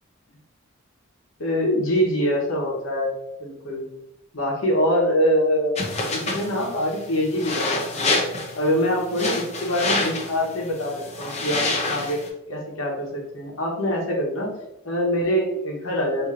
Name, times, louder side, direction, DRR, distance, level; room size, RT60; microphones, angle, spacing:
voice 1, 1.4-3.1 3.4-3.8 4.3-8.1 8.5-12.2 12.5-14.5 14.8-16.3, equal, 75° left, -1 dB, 1.0 m, -24 dB
sound 1, 5.8-12.3, left 2 dB, 30° left, 0.6 m, -28 dB
4.3 x 2.7 x 2.4 m, 0.87 s
head